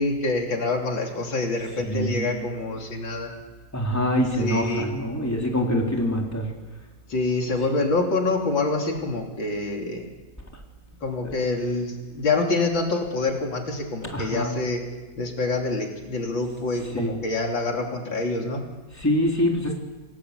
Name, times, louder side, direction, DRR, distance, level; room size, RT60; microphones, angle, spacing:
voice 1, 0.0-3.3 4.4-4.9 7.1-10.1 11.0-14.8 15.2-18.6, left 3 dB, 85° left, 2 dB, 3.8 m, -26 dB
voice 2, 1.8-2.3 3.7-6.5 11.2-11.3 14.0-14.5 16.9-17.2 18.9-19.8, equal, 10° left, 0 dB, 3.6 m, -25 dB
27.5 x 18.5 x 8.2 m, 1.2 s
omnidirectional pair, 2.0 m